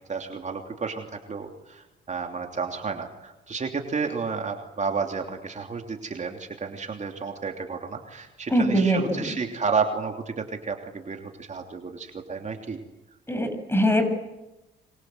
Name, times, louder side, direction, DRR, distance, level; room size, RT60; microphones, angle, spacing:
voice 1, 0.0-12.8, right 5 dB, 35° right, 3 dB, 3.1 m, -31 dB
voice 2, 8.5-9.2 13.3-14.0, equal, 10° left, 7 dB, 7.3 m, -22 dB
28.0 x 25.0 x 7.9 m, 0.98 s
cardioid pair, 90°, 20 cm